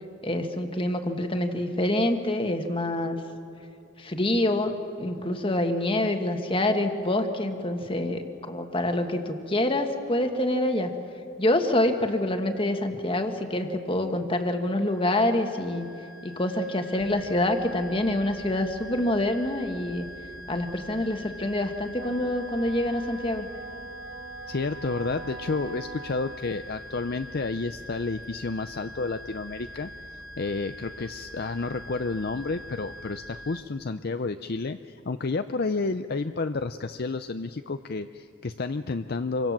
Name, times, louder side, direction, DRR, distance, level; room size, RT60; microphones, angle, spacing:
voice 1, 0.2-3.2 4.0-10.9 11.4-15.9 16.2-20.1 20.5-23.5, left 1 dB, 25° left, 6 dB, 1.6 m, -26 dB
sound 1, 14.5-33.6, equal, 65° left, 1.1 m, -45 dB
sound 2, 17.0-33.2, equal, 10° right, 1.8 m, -51 dB
Wind instrument woodwind instrument, 21.9-26.5, right 3 dB, 55° right, 1.2 m, -42 dB
voice 2, 24.5-30.0 30.4-39.5, left 3 dB, 45° left, 9 dB, 0.5 m, -30 dB
27.5 x 24.5 x 7.4 m, 2.8 s
head